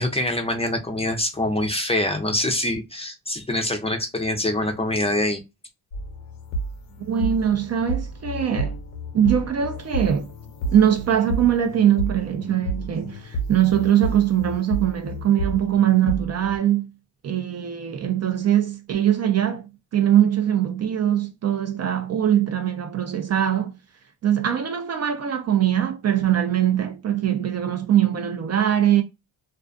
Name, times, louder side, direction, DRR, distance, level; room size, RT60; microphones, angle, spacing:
voice 1, 0.0-5.4, left 1 dB, 15° left, 0.5 m, -25 dB
sound 1, 5.9-16.6, right 2 dB, 85° left, 0.9 m, -31 dB
voice 2, 7.0-8.7 9.1-10.3 10.7-16.9 17.2-23.7 24.2-29.0, right 10 dB, 40° right, 0.4 m, -21 dB
2.4 x 2.4 x 2.2 m
cardioid pair, 100°, 42 cm